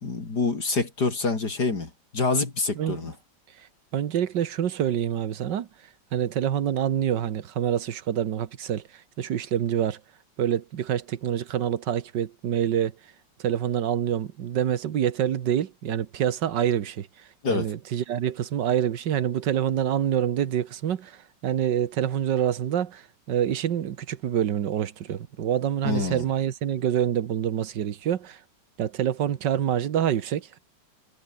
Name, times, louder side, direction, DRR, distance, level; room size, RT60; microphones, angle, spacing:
voice 1, 0.0-3.1 17.4-17.8 25.8-26.2, left 3 dB, 55° left, 4.0 m, -26 dB
voice 2, 3.9-5.7 6.1-8.8 9.2-10.0 10.4-12.9 13.4-17.1 17.5-28.4 28.8-30.6, right 9 dB, 70° right, 1.8 m, -26 dB
omnidirectional pair, 2.1 m